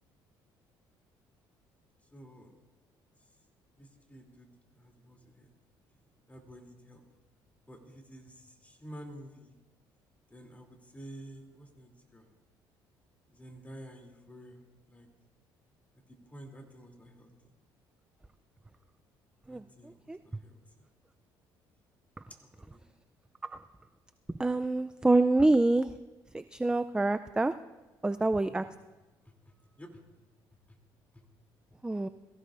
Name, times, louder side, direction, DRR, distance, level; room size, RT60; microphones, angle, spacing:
voice 1, 2.1-2.5 3.8-4.5 4.7-5.5 6.3-7.0 7.7-9.5 10.3-12.3 13.3-14.6 14.9-15.1 16.3-17.3 19.5-20.6 22.4-22.8 28.4-28.7 29.8-30.0, right 1 dB, 15° left, 2 dB, 2.9 m, -50 dB
voice 2, 24.4-25.9 26.5-27.5 28.0-28.6 31.8-32.1, right 2 dB, 10° right, 11 dB, 0.4 m, -26 dB
22.0 x 15.0 x 2.5 m, 1.1 s
supercardioid pair, 80°, 10 cm